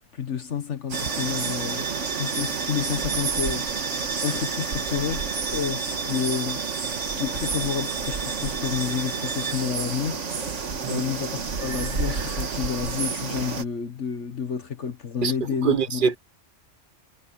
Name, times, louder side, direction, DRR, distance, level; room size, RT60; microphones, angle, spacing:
voice 1, 0.1-1.8 2.2-16.0, left 7 dB, 70° left, 1.6 m, -30 dB
sound 1, 0.9-9.7, right 6 dB, 25° right, 1.8 m, -35 dB
sound 2, 0.9-13.6, right 5 dB, 80° right, 1.8 m, -30 dB
voice 2, 15.6-16.2, right 6 dB, 45° right, 1.0 m, -23 dB
omnidirectional pair, 1.2 m